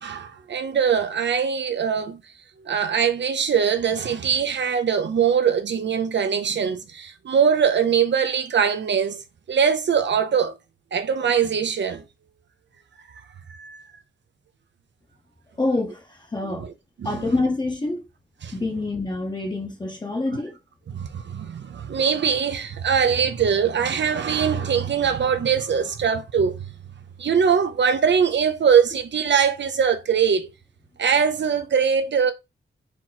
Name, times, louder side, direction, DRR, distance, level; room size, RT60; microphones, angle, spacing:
voice 1, 0.0-2.2 2.7-9.2 9.5-10.6 10.9-12.0 13.5-13.8 16.4-16.7 17.0-17.2 18.4-18.5 20.9-26.7 27.2-30.5 31.0-32.3, right 7 dB, 60° right, 0.7 m, -22 dB
voice 2, 15.6-16.7 17.0-18.1 18.5-20.6, left 2 dB, 20° left, 0.9 m, -26 dB
4.5 x 3.0 x 3.9 m
wide cardioid pair, 160°, 21 cm